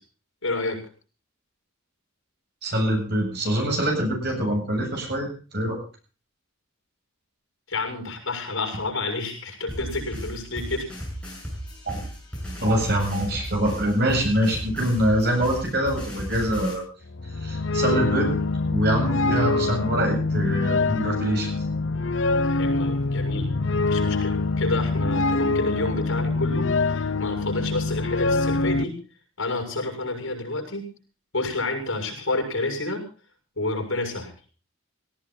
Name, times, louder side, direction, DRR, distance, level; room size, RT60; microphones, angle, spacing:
voice 1, 0.4-0.8 7.7-10.9 22.5-23.5 23.8-29.0 29.4-30.9 31.3-33.0 33.6-34.3, left 2 dB, 90° left, 4 dB, 6.8 m, -29 dB
voice 2, 2.6-5.8 11.9-12.1 12.6-16.8 17.4-18.4 18.7-21.5, right 1 dB, 50° right, 1 dB, 8.0 m, -24 dB
sound 1, 9.7-16.7, equal, 5° left, 7.1 m, -35 dB
sound 2, 17.1-28.8, left 3 dB, 70° left, 0.8 m, -24 dB
18.0 x 16.5 x 4.0 m, 0.38 s
head